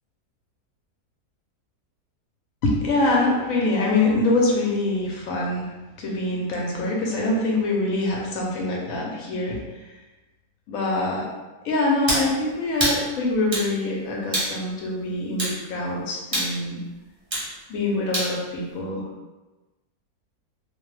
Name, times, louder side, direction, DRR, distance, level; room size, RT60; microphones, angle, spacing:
voice 1, 2.6-5.7 6.0-9.6 10.7-11.3 11.6-16.8 17.7-19.1, left 2 dB, 70° left, -2 dB, 0.9 m, -24 dB
sound 1, 12.1-12.3 12.8-13.0 13.5-13.7 14.3-14.5 15.4-15.6 16.3-16.5 17.3-17.5 18.1-18.3, right 1 dB, 30° right, 0.6 m, -24 dB
2.5 x 2.2 x 3.1 m, 1.1 s
omnidirectional pair, 1.7 m